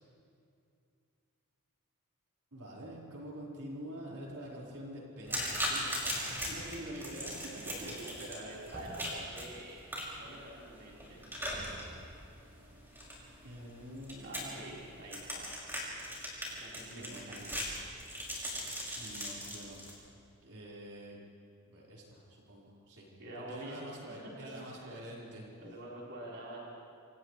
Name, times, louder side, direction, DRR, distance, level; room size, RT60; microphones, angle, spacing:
voice 1, 2.5-8.3 13.4-14.5 14.8-14.9 16.8-17.5 19.0-19.8 20.4-21.2 21.7-23.1 23.3-25.5, equal, 70° right, -5 dB, 4.8 m, -46 dB
sound 1, 5.3-19.9, equal, 10° right, 5.9 m, -40 dB
voice 2, 7.7-9.8 10.2-11.2 14.2-15.5 16.6-17.6 23.2-23.8 24.7-25.1 25.6-26.6, right 1 dB, 55° right, -6 dB, 4.5 m, -46 dB
28.5 x 28.0 x 3.3 m, 2.5 s
head